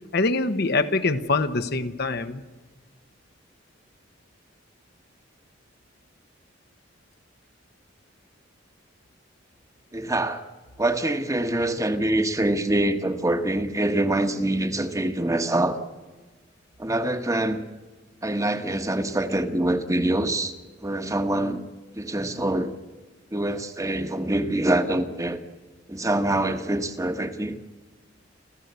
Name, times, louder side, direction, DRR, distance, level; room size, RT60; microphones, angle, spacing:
voice 1, 0.1-2.4, left 3 dB, 60° left, 9 dB, 1.2 m, -24 dB
voice 2, 9.9-10.4 10.8-15.8 16.8-17.6 18.2-20.5 20.8-21.6 21.9-22.7 23.3-25.4 25.9-27.6, right 1 dB, 15° right, 8 dB, 1.3 m, -25 dB
27.0 x 15.5 x 8.2 m, 1.3 s
head